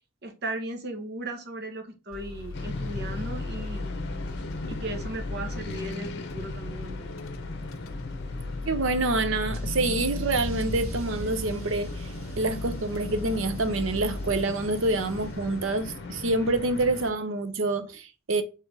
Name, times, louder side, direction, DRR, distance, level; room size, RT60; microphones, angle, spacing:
voice 1, 0.2-3.9 4.7-7.1, right 1 dB, 55° right, 1.1 m, -36 dB
sound 1, 2.1-14.4, left 2 dB, 75° left, 0.5 m, -37 dB
sound 2, 2.5-17.1, left 2 dB, 55° left, 0.8 m, -38 dB
voice 2, 8.7-12.1 12.4-18.4, right 2 dB, 70° right, 0.7 m, -27 dB
Car / Engine starting / Accelerating revving vroom, 9.5-16.0, equal, 85° right, 1.7 m, -43 dB
4.4 x 3.6 x 3.4 m
head